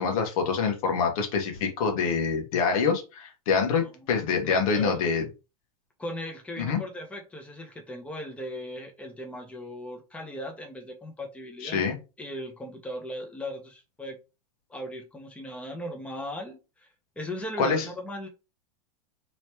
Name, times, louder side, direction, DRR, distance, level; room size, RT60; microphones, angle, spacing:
voice 1, 0.0-5.2 6.6-6.8 11.6-12.0 17.6-17.9, left 5 dB, 65° left, 4 dB, 1.3 m, -26 dB
voice 2, 4.5-5.0 6.0-11.8 12.2-14.2 14.7-16.9 17.2-18.3, equal, 5° left, 2 dB, 0.9 m, -37 dB
3.1 x 3.0 x 3.0 m, 0.29 s
hypercardioid pair, 110°, 20 cm